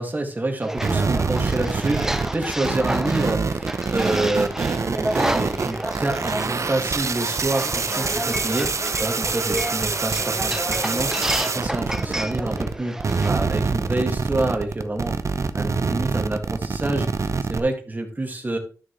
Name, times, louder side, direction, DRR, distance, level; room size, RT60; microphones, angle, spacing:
voice 1, 0.0-4.5 5.0-8.7 9.0-15.2 15.5-18.6, right 2 dB, 30° right, 3 dB, 2.0 m, -27 dB
sound 1, 0.6-13.3, right 1 dB, 5° right, 0.6 m, -30 dB
sound 2, 0.8-12.7 13.0-17.6, right 4 dB, 55° right, 0.7 m, -25 dB
Microwave oven / Alarm, 7.5-11.6, left 3 dB, 75° left, 5.2 m, -43 dB
12.5 x 6.2 x 3.2 m, 0.38 s
wide cardioid pair, 75°, 6 cm